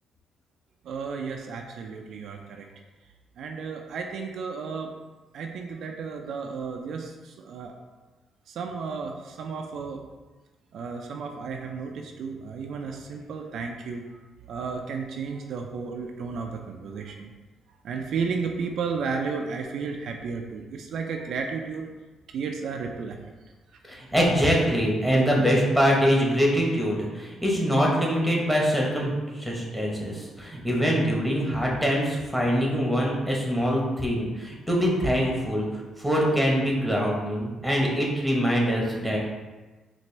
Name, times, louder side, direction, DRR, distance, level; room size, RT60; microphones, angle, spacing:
voice 1, 0.8-2.7 3.4-4.9 5.3-7.7 8.5-10.0 10.7-14.0 14.5-17.3 17.8-21.9 22.3-23.2, right 5 dB, 70° right, 3 dB, 0.4 m, -33 dB
voice 2, 23.9-39.2, equal, ahead, -2 dB, 1.0 m, -24 dB
4.2 x 2.5 x 3.2 m, 1.2 s
cardioid pair, 90°, 0 cm